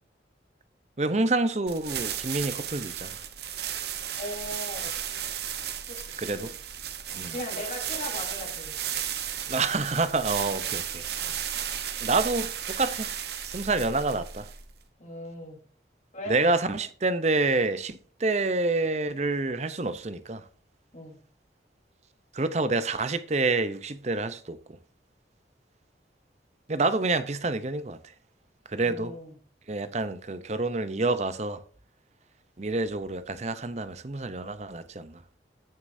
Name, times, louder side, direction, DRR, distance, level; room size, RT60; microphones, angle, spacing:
voice 1, 1.0-3.1 6.2-6.5 7.1-7.4 9.5-11.0 12.0-13.1 13.4-14.5 16.3-20.4 22.3-24.6 26.7-28.0 28.7-29.2 29.7-31.6 32.6-35.2, right 3 dB, 35° right, 0.6 m, -28 dB
sound 1, 1.7-14.8, right 9 dB, 60° right, 0.9 m, -34 dB
voice 2, 4.2-4.9 5.9-6.5 7.1-8.8 11.2-11.4 15.0-15.6 16.1-16.4 20.9-21.2 28.8-29.3, left 1 dB, 40° left, 3.9 m, -38 dB
15.5 x 6.5 x 2.7 m
head